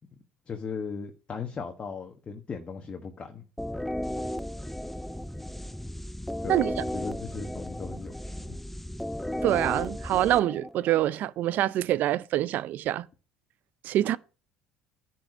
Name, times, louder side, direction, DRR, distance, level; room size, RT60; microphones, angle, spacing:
voice 1, 0.5-3.4 6.4-8.6, left 5 dB, 35° left, 1.4 m, -38 dB
sound 1, 3.6-11.2, left 1 dB, 5° left, 0.6 m, -35 dB
voice 2, 9.4-13.1 13.8-14.2, right 13 dB, 60° right, 0.5 m, -25 dB
10.5 x 4.5 x 6.3 m
hypercardioid pair, 75°, 3 cm